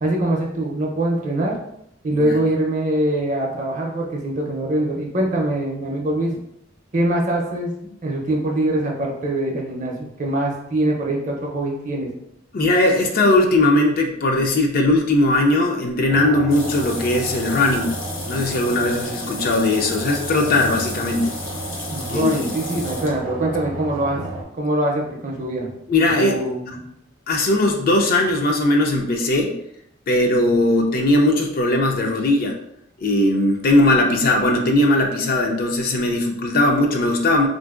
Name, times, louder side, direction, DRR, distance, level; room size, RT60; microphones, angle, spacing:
voice 1, 0.0-1.6 2.0-6.4 6.9-12.1 21.9-24.2 24.5-25.7 26.2-26.8, right 1 dB, 40° right, 0 dB, 0.6 m, -23 dB
voice 2, 12.5-17.9 18.3-21.3 22.1-22.5 25.9-26.4 27.3-29.5 30.1-32.6 33.0-37.5, left 2 dB, 50° left, 2 dB, 0.4 m, -19 dB
sound 1, 16.1-24.4, right 1 dB, 85° right, 0.6 m, -32 dB
sound 2, 16.5-23.2, left 3 dB, 85° left, 0.7 m, -35 dB
3.5 x 2.5 x 2.4 m, 0.76 s
head